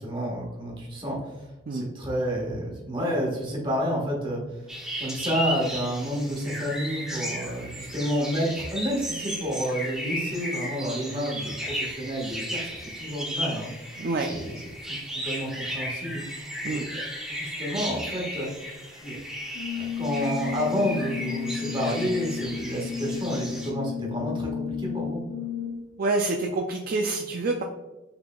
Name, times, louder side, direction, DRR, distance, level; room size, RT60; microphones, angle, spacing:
voice 1, 0.0-4.7 5.0-12.7 12.9-13.7 14.3-14.5 14.9-16.2 16.6-17.0 17.3-18.5 19.0-19.2 19.7-25.2, equal, 25° right, -2 dB, 1.3 m, -30 dB
sound 1, 4.7-23.7, equal, 5° right, 1.0 m, -35 dB
Brass instrument, 19.5-25.9, left 7 dB, 75° left, 0.6 m, -33 dB
voice 2, 26.0-27.6, right 3 dB, 50° right, 2 dB, 0.4 m, -27 dB
5.8 x 3.5 x 2.3 m, 1.1 s
head